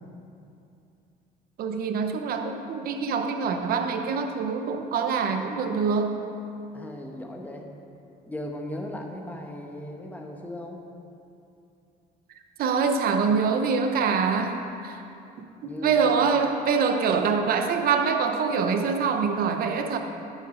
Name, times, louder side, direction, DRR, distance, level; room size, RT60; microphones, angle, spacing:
voice 1, 1.6-6.3 12.6-15.0 15.6-20.0, right 5 dB, 60° right, 6 dB, 0.8 m, -25 dB
voice 2, 6.7-7.7 8.3-10.8 15.6-16.0 19.5-19.6, left 1 dB, 10° left, 1 dB, 1.1 m, -37 dB
9.4 x 6.6 x 5.1 m, 2.7 s
cardioid pair, 110°, 17 cm